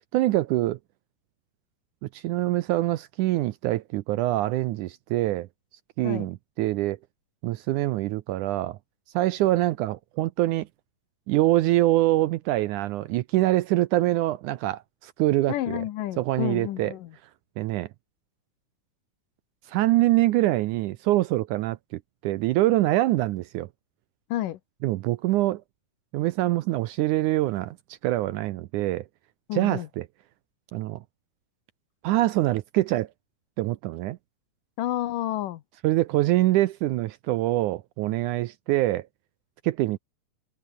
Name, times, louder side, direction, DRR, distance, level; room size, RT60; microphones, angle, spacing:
voice 1, 0.1-0.8 2.1-5.5 6.0-7.0 7.4-8.8 9.1-10.7 11.3-15.8 16.2-16.9 17.6-17.9 19.7-23.7 24.8-25.6 26.1-29.1 29.5-30.1 30.7-31.0 32.0-33.1 33.6-34.2 35.8-39.1 39.6-40.0, right 16 dB, 75° right, 1.9 m, -24 dB
voice 2, 15.5-17.1 24.3-24.6 29.5-29.9 34.8-35.6, left 14 dB, 75° left, 2.6 m, -30 dB
omnidirectional pair, 4.1 m